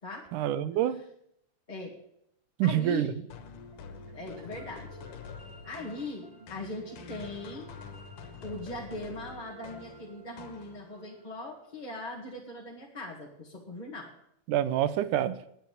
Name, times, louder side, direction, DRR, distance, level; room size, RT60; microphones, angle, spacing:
voice 1, 0.3-1.0 2.6-3.1 14.5-15.4, right 11 dB, 85° right, 13 dB, 2.3 m, -27 dB
voice 2, 2.6-3.1 4.1-4.9 5.6-7.7 8.4-14.2, left 2 dB, 20° left, -3 dB, 1.3 m, -40 dB
Doepfer Sylenth Sequence, 3.1-12.2, right 3 dB, 35° right, 1.1 m, -53 dB
sound 1, 3.3-11.1, left 6 dB, 85° left, 2.8 m, -47 dB
10.5 x 9.5 x 8.6 m, 0.74 s
omnidirectional pair, 3.6 m